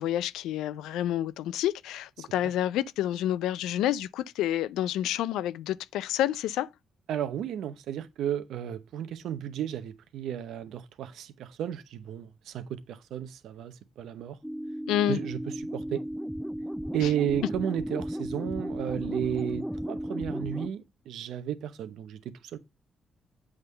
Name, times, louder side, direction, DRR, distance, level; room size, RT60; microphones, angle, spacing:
voice 1, 0.0-6.7 14.9-15.2 17.0-17.1, left 12 dB, 85° left, 0.4 m, -29 dB
voice 2, 7.1-14.4 15.1-15.4 15.7-16.0 16.9-22.2 22.5-22.6, right 10 dB, 80° right, 0.8 m, -33 dB
sound 1, 14.4-20.7, equal, ahead, 0.4 m, -34 dB
8.0 x 3.7 x 6.6 m
supercardioid pair, 60°, 0 cm